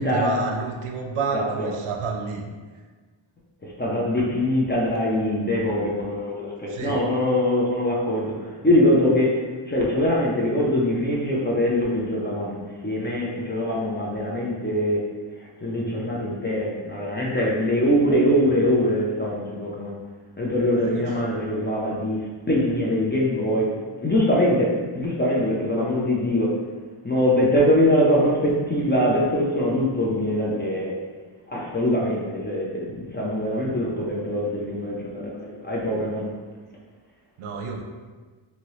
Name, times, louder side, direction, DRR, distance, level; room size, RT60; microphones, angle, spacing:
voice 1, 0.0-2.5 6.7-7.0 20.7-21.1 37.4-37.8, right 4 dB, 75° right, 2 dB, 0.6 m, -29 dB
voice 2, 1.3-1.7 3.6-9.4 9.7-15.0 15.4-19.9 20.4-22.2 22.5-23.7 24.0-26.6 27.0-30.9 31.5-36.3, left 1 dB, 20° left, -4 dB, 0.4 m, -23 dB
2.9 x 2.7 x 2.9 m, 1.4 s
wide cardioid pair, 120°, 50 cm